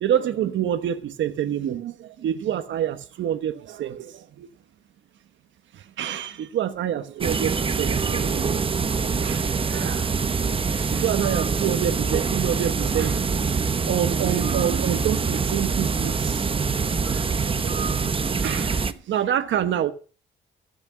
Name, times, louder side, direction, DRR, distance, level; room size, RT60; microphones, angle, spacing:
voice 1, 0.0-4.5 6.0-10.2 10.7-13.4 13.9-16.4 17.0-18.1 18.4-19.9, right 10 dB, 70° right, 1.2 m, -27 dB
sound 1, 7.2-18.9, right 5 dB, 25° right, 0.9 m, -24 dB
14.5 x 6.3 x 7.2 m
cardioid pair, 90°, 20 cm